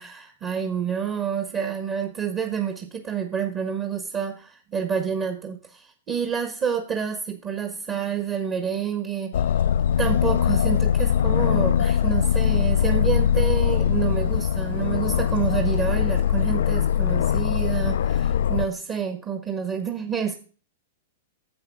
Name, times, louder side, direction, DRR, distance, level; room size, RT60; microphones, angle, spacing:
voice 1, 0.0-9.4 10.0-20.3, right 7 dB, 30° right, 5 dB, 1.5 m, -28 dB
Aircraft, 9.3-18.7, left 9 dB, 75° left, 0.4 m, -22 dB
10.5 x 7.6 x 3.6 m, 0.38 s
hypercardioid pair, 120°, 0 cm